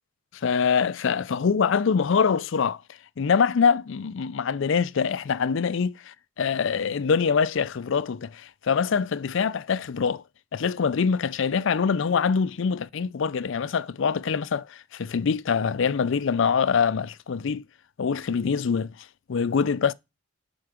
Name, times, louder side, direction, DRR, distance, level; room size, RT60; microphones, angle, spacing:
voice 1, 0.4-2.8 3.2-10.2 10.5-17.6 18.0-18.9 19.3-19.9, left 6 dB, 65° left, 0.4 m, -24 dB
7.7 x 5.8 x 5.0 m
head